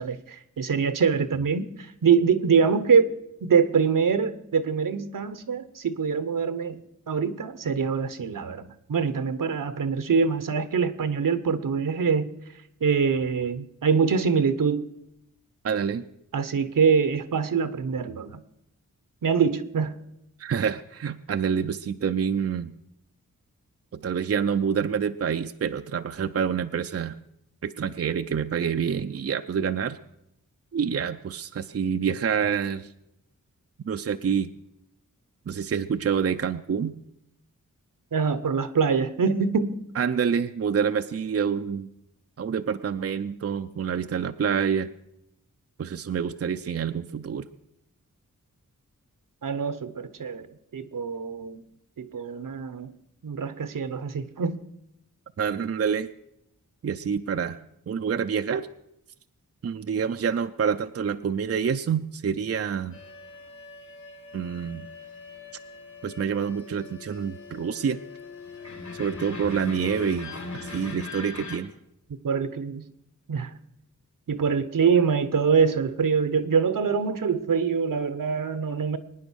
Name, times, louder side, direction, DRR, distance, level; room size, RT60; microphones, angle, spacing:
voice 1, 0.0-3.1 3.4-6.8 7.1-12.3 12.8-14.8 16.3-18.4 19.2-19.9 38.1-39.8 49.4-50.5 50.7-51.6 52.0-52.9 53.2-54.6 72.1-72.8 73.3-73.6 74.3-79.0, right 6 dB, 75° right, 13 dB, 1.1 m, -24 dB
voice 2, 15.6-16.1 20.4-22.7 23.9-27.2 27.6-30.0 30.7-32.9 33.9-34.5 35.5-36.9 40.0-41.9 42.4-44.9 45.8-47.5 55.4-56.1 56.8-57.6 57.9-58.7 59.6-63.0 64.3-64.9 66.0-68.0 68.9-71.7, right 7 dB, 45° right, 9 dB, 0.6 m, -27 dB
sound 1, 62.9-71.6, left 4 dB, 60° left, 4.5 m, -40 dB
22.5 x 9.8 x 6.3 m, 0.82 s
wide cardioid pair, 120°, 32 cm